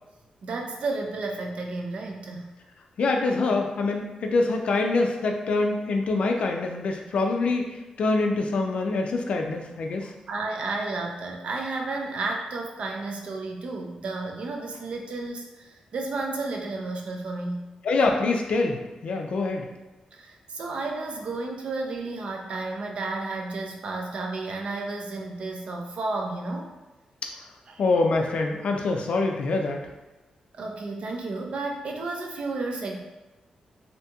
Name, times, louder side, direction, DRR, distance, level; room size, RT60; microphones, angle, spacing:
voice 1, 0.4-2.5 10.3-17.7 20.1-26.7 27.7-27.8 30.5-33.0, right 3 dB, 55° right, 1 dB, 0.4 m, -32 dB
voice 2, 3.0-10.1 17.8-19.7 27.8-29.9, left 3 dB, 60° left, 3 dB, 0.3 m, -25 dB
2.7 x 2.2 x 2.8 m, 1.1 s
wide cardioid pair, 155°, 2 cm